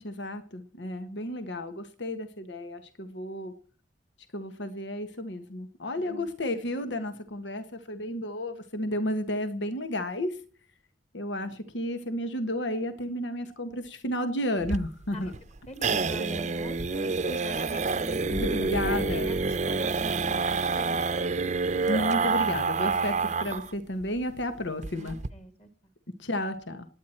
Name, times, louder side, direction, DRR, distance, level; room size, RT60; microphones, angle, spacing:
voice 1, 0.0-3.5 4.3-10.4 11.1-15.3 18.3-19.3 21.8-25.2 26.2-26.9, left 1 dB, 90° left, 10 dB, 1.4 m, -32 dB
voice 2, 5.9-6.3 15.1-15.2 15.7-21.4 25.0-25.7, right 1 dB, 35° left, 8 dB, 2.5 m, -42 dB
sound 1, 14.6-23.7 24.0-24.1 24.4-24.5 24.8-25.3, right 4 dB, 40° right, 0.7 m, -28 dB
27.0 x 9.6 x 4.4 m, 0.40 s
head